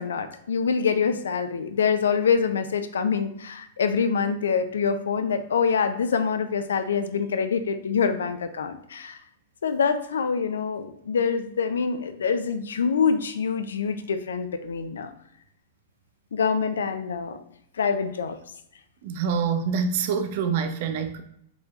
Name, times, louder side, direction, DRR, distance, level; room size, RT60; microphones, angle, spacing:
voice 1, 0.0-9.2 9.6-15.1 16.3-17.4 17.8-18.4, left 6 dB, 70° left, 10 dB, 0.4 m, -25 dB
voice 2, 19.0-21.2, right 6 dB, 50° right, 9 dB, 0.5 m, -26 dB
4.3 x 4.1 x 2.4 m, 0.72 s
figure-of-eight pair, 100°, 0 cm